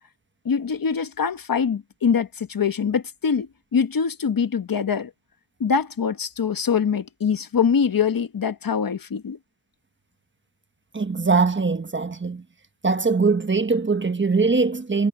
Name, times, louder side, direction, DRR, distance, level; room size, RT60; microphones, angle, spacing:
voice 1, 0.4-5.1 5.6-9.4, left 6 dB, 65° left, 1.4 m, -23 dB
voice 2, 10.9-12.4 12.8-15.1, right 4 dB, 30° right, 1.3 m, -21 dB
cardioid pair, 70°, 38 cm